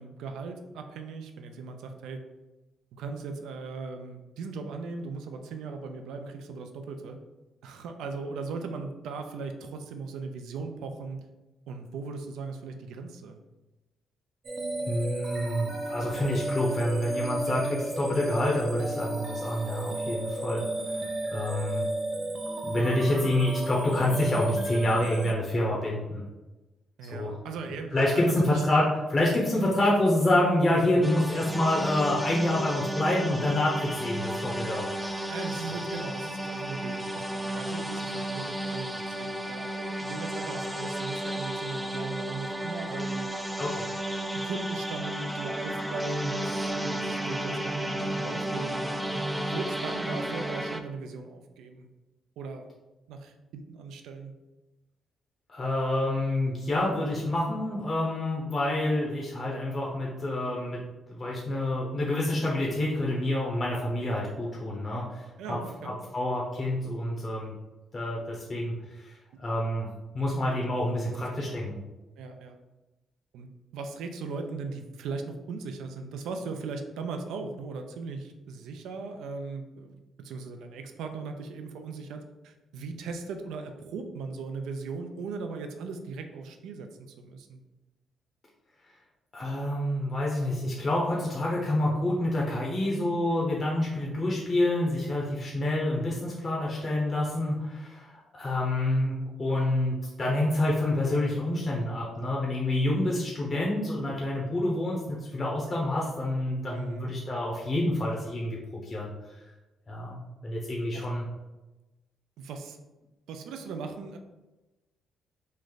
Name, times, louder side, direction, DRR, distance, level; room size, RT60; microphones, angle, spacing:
voice 1, 0.0-2.2 2.9-7.2 7.6-11.2 11.7-13.4 27.0-28.6 35.3-43.3 44.3-51.9 52.4-52.7 53.1-54.3 65.4-66.0 69.3-69.4 71.3-71.6 72.2-72.6 73.3-87.6 106.7-107.2 110.9-111.1 112.4-112.8 113.3-114.2, right 4 dB, 85° right, 6 dB, 0.4 m, -38 dB
sound 1, 14.4-25.3, right 1 dB, 50° right, 0.6 m, -33 dB
voice 2, 14.8-21.0 21.3-21.9 22.6-26.2 27.1-27.3 27.9-28.8 29.1-34.9 43.6-43.9 55.5-60.8 61.1-65.6 65.8-67.5 67.9-69.9 70.1-71.8 89.3-109.1 109.9-111.2, left 1 dB, 35° left, -4 dB, 0.8 m, -27 dB
sound 2, 31.0-50.8, right 1 dB, 5° right, 0.4 m, -33 dB
3.2 x 2.5 x 3.9 m, 1.1 s
cardioid pair, 90°, 0 cm